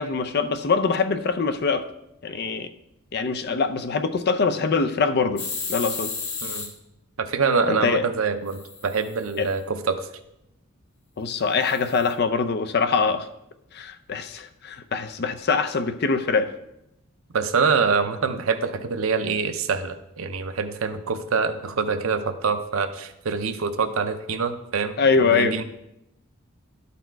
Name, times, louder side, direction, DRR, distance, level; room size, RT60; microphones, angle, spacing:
voice 1, 0.0-1.9 2.2-2.7 3.1-6.1 7.7-8.0 9.4-9.5 11.2-13.3 13.7-16.5 25.0-25.6, left 4 dB, 50° left, 11 dB, 0.5 m, -23 dB
sound 1, 5.4-6.7 8.5-9.5 11.6-12.1, left 4 dB, 70° left, 1.9 m, -33 dB
voice 2, 7.2-10.1 17.3-25.6, right 5 dB, 70° right, 9 dB, 0.7 m, -25 dB
12.0 x 4.2 x 4.5 m, 0.84 s
head